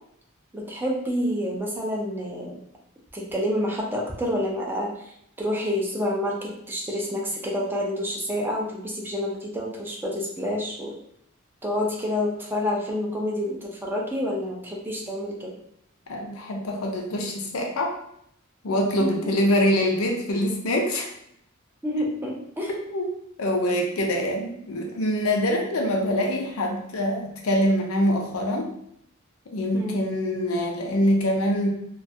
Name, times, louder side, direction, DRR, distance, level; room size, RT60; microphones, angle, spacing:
voice 1, 0.5-2.6 3.1-4.9 5.4-10.9 11.6-15.6 19.0-19.3 21.8-22.7 29.7-30.0, left 1 dB, 10° right, -2 dB, 0.4 m, -28 dB
voice 2, 16.1-17.9 18.6-21.1 22.9-23.1 23.4-28.7 29.5-31.7, left 1 dB, 80° left, 1 dB, 0.5 m, -24 dB
2.3 x 2.2 x 2.6 m, 0.74 s
head